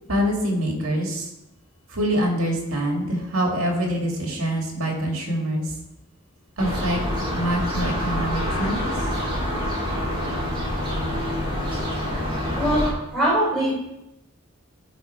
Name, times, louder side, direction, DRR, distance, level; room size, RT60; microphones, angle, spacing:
voice 1, 0.1-1.3 1.9-5.7 6.6-8.8, equal, 85° right, 1 dB, 1.9 m, -25 dB
sound 1, 6.6-12.9, equal, 25° right, 1.9 m, -26 dB
voice 2, 12.5-13.7, right 1 dB, ahead, -9 dB, 3.2 m, -22 dB
12.0 x 4.1 x 4.5 m, 0.89 s
head